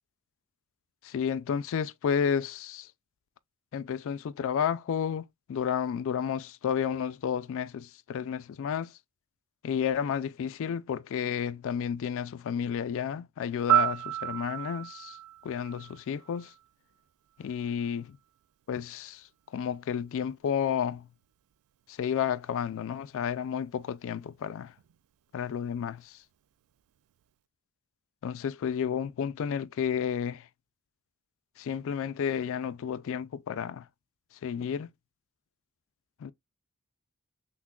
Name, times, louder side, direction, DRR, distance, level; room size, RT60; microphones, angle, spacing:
voice 1, 1.0-2.9 3.7-8.9 9.6-15.2 15.4-16.5 17.4-18.2 18.7-21.1 21.9-24.7 25.3-26.2 28.2-30.5 31.6-33.9 34.4-34.9 36.2-36.3, left 8 dB, 60° left, 0.3 m, -31 dB
Piano, 13.7-16.6 24.8-25.0, right 13 dB, 80° right, 0.3 m, -30 dB
5.9 x 2.1 x 2.3 m
head